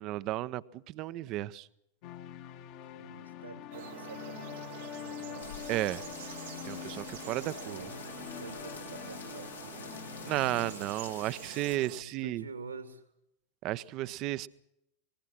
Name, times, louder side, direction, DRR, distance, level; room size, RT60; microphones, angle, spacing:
voice 1, 0.0-1.7 5.7-6.0 6.7-7.8 10.2-12.4 13.6-14.5, right 16 dB, 40° right, 16 dB, 0.8 m, -33 dB
sound 1, 2.0-10.7, left 12 dB, 45° left, 1.5 m, -45 dB
voice 2, 2.9-6.1 7.2-8.1 8.4-10.2 11.9-13.1, right 3 dB, 80° right, 7 dB, 2.7 m, -48 dB
sound 2, 3.7-12.0, right 12 dB, 55° right, 1.1 m, -47 dB
sound 3, 5.4-11.8, left 6 dB, 75° left, 2.0 m, -49 dB
26.0 x 20.5 x 6.1 m, 0.81 s
figure-of-eight pair, 90°, 0 cm